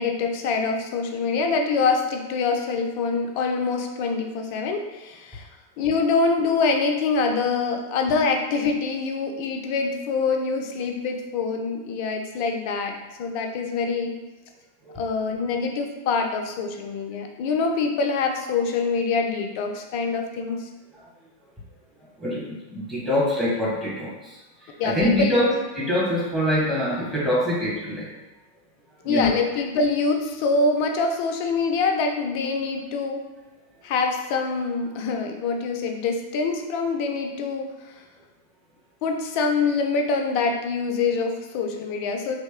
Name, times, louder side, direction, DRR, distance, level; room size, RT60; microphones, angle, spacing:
voice 1, 0.0-5.5 5.8-14.1 15.0-20.7 24.8-25.6 29.0-33.2 33.8-37.9 39.0-42.3, left 4 dB, 45° left, 4 dB, 0.5 m, -25 dB
voice 2, 22.2-24.4 24.8-25.4 25.7-28.1 29.0-29.3, left 1 dB, 5° right, -7 dB, 1.5 m, -24 dB
3.2 x 2.9 x 3.5 m, 1.1 s
figure-of-eight pair, 90°, 0 cm